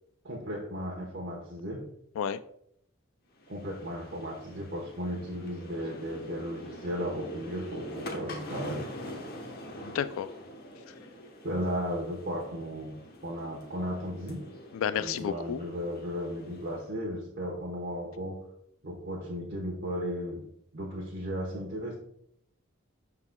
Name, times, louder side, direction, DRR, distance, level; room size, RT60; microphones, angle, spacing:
voice 1, 0.2-1.9 3.5-8.8 11.4-14.5 15.0-18.4 18.8-20.5 20.7-22.0, equal, 55° right, -3 dB, 1.0 m, -35 dB
sound 1, 3.4-16.9, equal, 45° left, 1.0 m, -45 dB
voice 2, 9.8-10.3 14.7-15.6, left 8 dB, 70° left, 15 dB, 0.3 m, -31 dB
11.5 x 3.9 x 2.2 m, 0.71 s
head